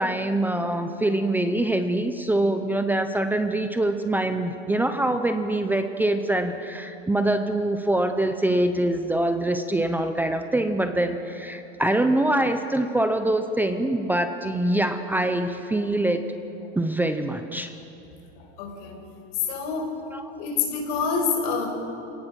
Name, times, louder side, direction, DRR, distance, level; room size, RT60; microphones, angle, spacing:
voice 1, 0.0-16.2 16.8-17.7 20.1-20.3, right 1 dB, 5° right, 8 dB, 0.7 m, -24 dB
voice 2, 18.6-18.9 19.5-19.9 20.4-21.7, left 5 dB, 55° left, 0 dB, 6.0 m, -26 dB
27.5 x 18.0 x 5.9 m, 2.9 s
supercardioid pair, 140°, 35 cm